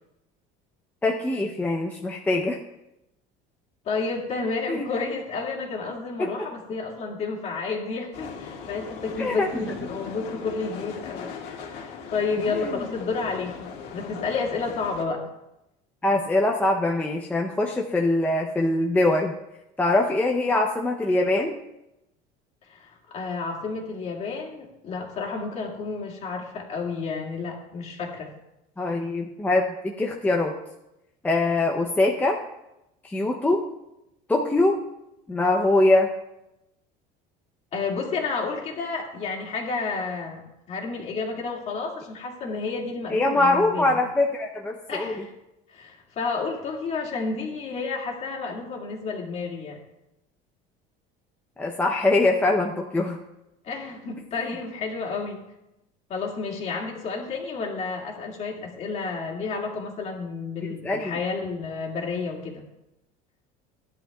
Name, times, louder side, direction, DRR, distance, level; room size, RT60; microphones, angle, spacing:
voice 1, 1.0-2.6 4.7-4.9 6.2-6.3 9.2-9.7 12.6-12.7 16.0-19.3 19.8-21.6 28.8-30.6 31.2-32.4 33.0-33.7 34.3-34.8 35.3-36.1 43.1-45.1 51.6-53.2 60.7-61.2, left 2 dB, 10° left, 0 dB, 0.6 m, -23 dB
voice 2, 3.9-15.3 22.7-28.3 37.7-44.0 44.9-45.3 45.7-49.8 53.6-55.4 56.1-62.6, left 4 dB, 35° left, -1 dB, 2.2 m, -31 dB
sound 1, 8.1-15.0, left 6 dB, 60° left, 1.8 m, -39 dB
16.0 x 10.5 x 2.3 m, 0.89 s
cardioid pair, 150°, 19 cm